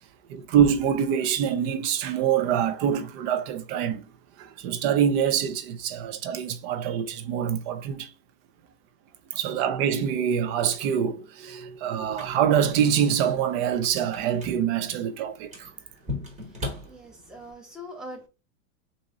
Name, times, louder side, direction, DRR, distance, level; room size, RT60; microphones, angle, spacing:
voice 1, 0.3-4.0 4.4-8.1 9.3-15.7 16.1-16.2, right 8 dB, 50° right, 0.7 m, -25 dB
sound 1, 12.0-17.5, left 2 dB, 20° right, 1.2 m, -40 dB
voice 2, 16.5-18.3, equal, ahead, 0.8 m, -43 dB
2.9 x 2.7 x 3.6 m
hypercardioid pair, 120°, 39 cm